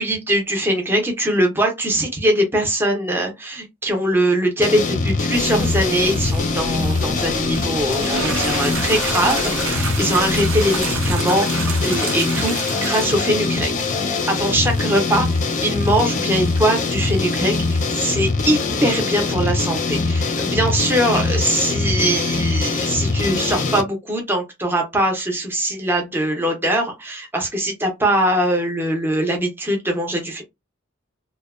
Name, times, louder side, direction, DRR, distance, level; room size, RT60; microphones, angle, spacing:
voice 1, 0.0-13.7 14.0-15.3 15.6-30.4, right 1 dB, 10° right, 0.6 m, -22 dB
sound 1, 4.6-23.8, left 3 dB, 40° left, 0.4 m, -22 dB
sound 2, 5.3-11.1, right 2 dB, 55° right, 0.9 m, -35 dB
sound 3, 7.9-18.1, right 5 dB, 75° right, 0.7 m, -31 dB
2.6 x 2.1 x 2.3 m
head